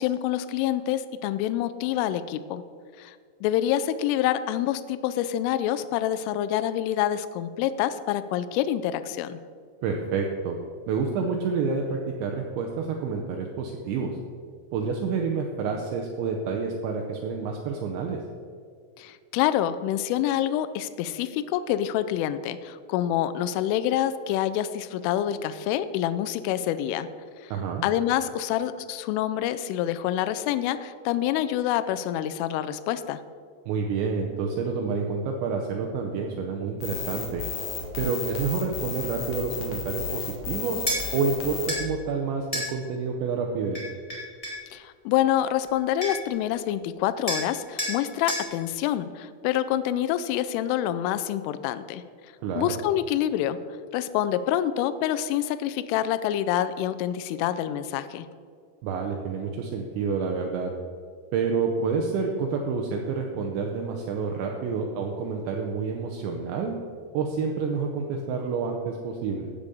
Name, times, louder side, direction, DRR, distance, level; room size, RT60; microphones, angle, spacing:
voice 1, 0.0-2.6 3.0-3.2 3.4-9.4 19.0-27.1 27.4-27.5 27.8-33.2 44.7-52.0 52.6-53.6 53.9-58.3, left 11 dB, 85° left, 12 dB, 3.0 m, -27 dB
voice 2, 9.8-10.6 10.9-14.2 14.7-18.2 27.5-27.9 33.7-37.4 38.0-40.8 41.1-43.8 52.4-52.7 58.8-60.7 61.3-66.8 67.1-69.5, right 5 dB, 80° right, 2 dB, 2.9 m, -28 dB
sound 1, 36.8-41.7, left 5 dB, 60° left, 2.2 m, -33 dB
sound 2, 40.9-41.0 41.7-41.8 42.5-42.7 43.7-44.6 45.7-45.8 46.0-46.3 47.3-47.5 47.8-48.0 48.3-48.5, equal, 40° left, 0.4 m, -29 dB
15.0 x 5.2 x 6.9 m, 2.1 s
omnidirectional pair, 5.7 m